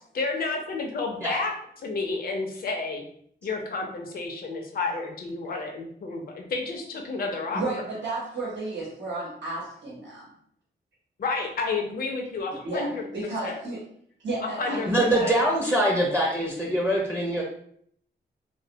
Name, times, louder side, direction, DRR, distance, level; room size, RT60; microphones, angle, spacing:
voice 1, 0.1-1.5 1.8-3.0 3.4-7.6 11.2-13.0 13.4-13.6 14.4-15.3, left 3 dB, 55° left, 2 dB, 0.4 m, -30 dB
voice 2, 7.5-10.3 12.5-13.8 14.2-15.3, right 2 dB, 80° right, -5 dB, 0.8 m, -33 dB
voice 3, 14.9-17.4, right 1 dB, 15° right, -3 dB, 0.5 m, -23 dB
2.5 x 2.0 x 2.7 m, 0.65 s
cardioid pair, 80°, 19 cm